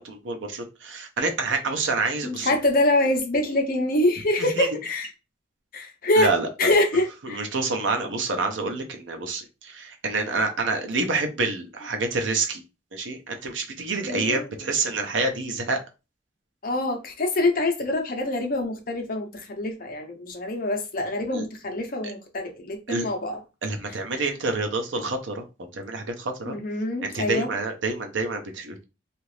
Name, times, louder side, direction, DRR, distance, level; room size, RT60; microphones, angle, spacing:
voice 1, 0.0-2.5 4.4-4.7 6.2-6.7 7.2-12.6 12.9-15.8 21.3-21.4 22.9-23.1 23.6-25.4 25.7-26.6 27.0-28.8, right 3 dB, 80° right, 0.7 m, -27 dB
voice 2, 2.2-5.1 5.7-6.3 6.6-7.5 14.0-14.5 16.6-23.4 23.9-24.0 26.5-27.5, left 1 dB, 50° left, 0.7 m, -25 dB
2.8 x 2.5 x 3.2 m
head